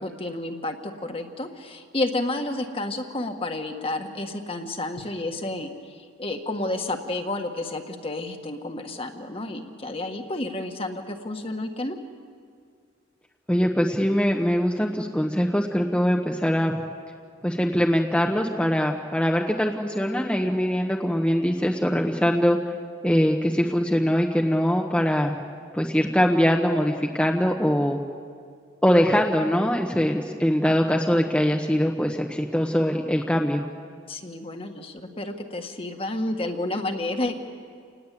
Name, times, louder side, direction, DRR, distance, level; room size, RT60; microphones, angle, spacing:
voice 1, 0.0-12.0 34.1-37.4, left 2 dB, 30° left, 5 dB, 1.7 m, -31 dB
voice 2, 13.5-16.8 17.4-22.6 23.0-25.4 25.7-28.0 28.8-33.7, equal, 5° left, 1 dB, 1.1 m, -22 dB
29.0 x 19.5 x 8.4 m, 2.2 s
head